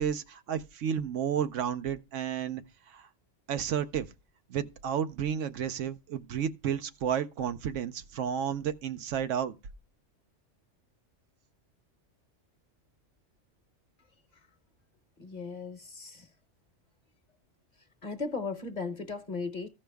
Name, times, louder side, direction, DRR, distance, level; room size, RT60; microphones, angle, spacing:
voice 1, 0.0-2.6 2.9-3.1 3.5-4.1 4.5-9.5, right 8 dB, 85° right, 1.0 m, -32 dB
voice 2, 15.2-16.3 18.0-19.7, left 4 dB, 40° left, 1.0 m, -36 dB
15.0 x 5.4 x 3.4 m
omnidirectional pair, 1.3 m